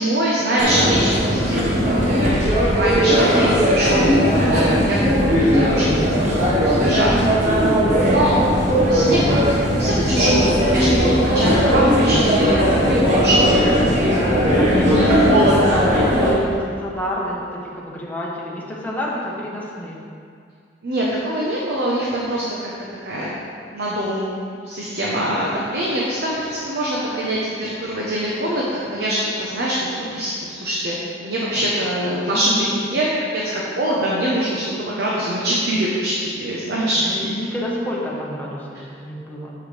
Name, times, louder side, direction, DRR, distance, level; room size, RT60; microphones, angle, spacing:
voice 1, 0.0-7.1 7.6-7.8 8.1-8.3 8.9-9.4 9.8-14.1 14.7-15.8 20.8-22.7 23.0-23.3 23.7-24.3 24.6-37.3, right 1 dB, 65° right, -5 dB, 1.0 m, -23 dB
sound 1, 0.6-16.3, equal, 40° right, 1.4 m, -18 dB
voice 2, 2.6-2.9 7.8-8.1 9.9-10.2 14.6-15.2 15.7-20.0 31.4-31.5 32.2-32.6 37.0-39.5, left 1 dB, 10° left, -5 dB, 1.2 m, -29 dB
7.9 x 7.2 x 3.4 m, 2.3 s
head